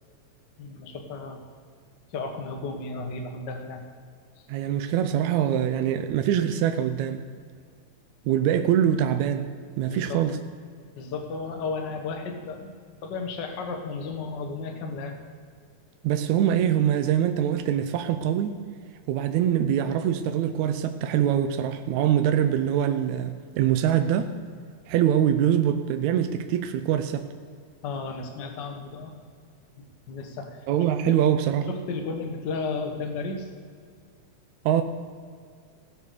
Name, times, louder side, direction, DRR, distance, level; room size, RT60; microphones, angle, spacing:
voice 1, 0.6-1.4 2.1-3.8 9.9-10.2 11.0-12.7 13.0-15.1 27.8-29.1 29.8-30.6 31.1-31.3 31.7-33.5, left 4 dB, 50° left, 4 dB, 1.5 m, -33 dB
voice 2, 4.5-7.2 8.3-9.5 9.8-10.4 16.0-18.6 19.1-24.3 24.9-27.2 30.7-31.7 34.7-34.8, right 10 dB, 80° right, 8 dB, 1.9 m, -24 dB
17.0 x 6.8 x 6.6 m, 2.1 s
omnidirectional pair, 3.4 m